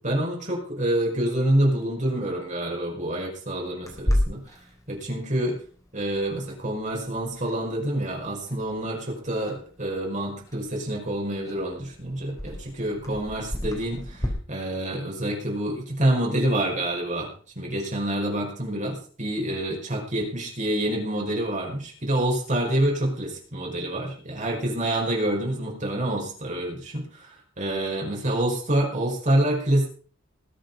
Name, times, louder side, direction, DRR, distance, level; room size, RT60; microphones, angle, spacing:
voice 1, 0.0-4.6 4.9-5.6 5.9-29.9, right 1 dB, 40° right, 0 dB, 5.4 m, -27 dB
Clock, 3.8-14.3, left 1 dB, 20° left, 4.0 m, -34 dB
21.0 x 7.9 x 5.6 m, 0.42 s
head